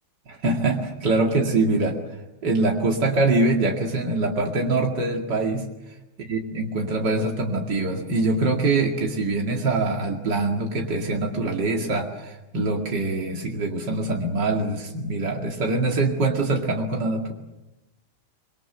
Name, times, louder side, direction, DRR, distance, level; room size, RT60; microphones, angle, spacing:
voice 1, 0.3-2.0 2.4-5.7 6.3-17.3, right 2 dB, 80° right, 1 dB, 3.0 m, -24 dB
26.0 x 23.0 x 7.9 m, 0.99 s
omnidirectional pair, 1.8 m